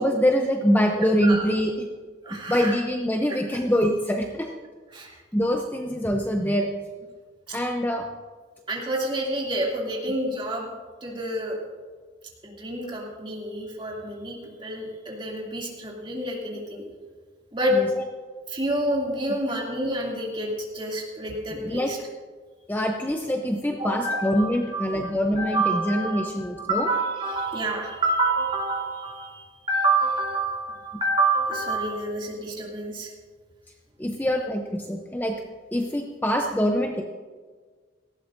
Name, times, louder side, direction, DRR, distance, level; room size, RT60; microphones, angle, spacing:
voice 1, 0.0-1.9 2.3-4.5 5.3-6.7 7.5-8.1 17.7-17.9 21.5-22.0 22.7-26.9 34.0-35.4 35.7-37.0, equal, 10° left, 2 dB, 0.6 m, -24 dB
voice 2, 0.9-1.5 2.2-2.7 4.9-5.1 7.5-7.6 8.7-10.7 11.0-11.6 12.4-16.8 17.5-17.8 18.5-22.0 23.8-33.1, right 2 dB, 25° right, -3 dB, 2.6 m, -28 dB
18.0 x 15.0 x 2.6 m, 1.5 s
head